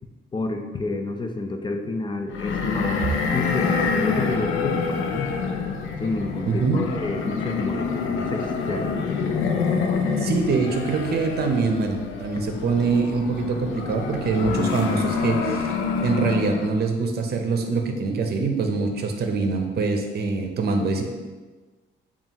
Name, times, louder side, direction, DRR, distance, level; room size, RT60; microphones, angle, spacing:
voice 1, 0.3-5.3 6.0-9.0, left 2 dB, 25° left, 4 dB, 0.5 m, -29 dB
sound 1, 2.3-16.8, left 5 dB, 80° left, 0.5 m, -27 dB
voice 2, 6.5-6.8 10.2-15.7 16.0-21.0, right 4 dB, 55° right, 4 dB, 0.7 m, -24 dB
7.1 x 2.4 x 2.9 m, 1.3 s
cardioid pair, 90°, 20 cm